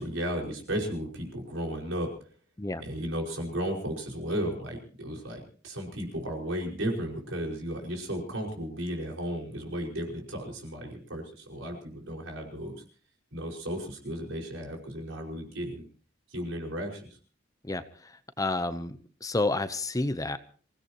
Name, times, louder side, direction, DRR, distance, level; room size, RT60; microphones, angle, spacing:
voice 1, 0.0-2.1 2.8-12.8 13.3-15.9 16.3-17.1, equal, 85° right, 0 dB, 5.3 m, -34 dB
voice 2, 17.6-20.4, left 2 dB, 20° left, 12 dB, 0.8 m, -30 dB
26.5 x 17.0 x 3.0 m, 0.42 s
head